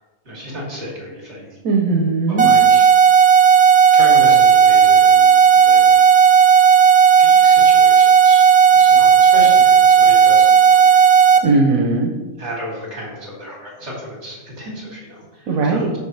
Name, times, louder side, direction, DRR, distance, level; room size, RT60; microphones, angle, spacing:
voice 1, 0.2-1.5 2.3-2.9 3.9-6.0 7.2-11.0 12.4-15.8, equal, 55° right, -4 dB, 3.1 m, -33 dB
voice 2, 1.6-2.5 11.4-12.1 15.5-15.9, right 3 dB, 85° right, 0 dB, 1.3 m, -18 dB
sound 1, 2.4-11.4, right 7 dB, 40° right, 0.6 m, -11 dB
12.0 x 5.0 x 3.2 m, 1.1 s
omnidirectional pair, 1.4 m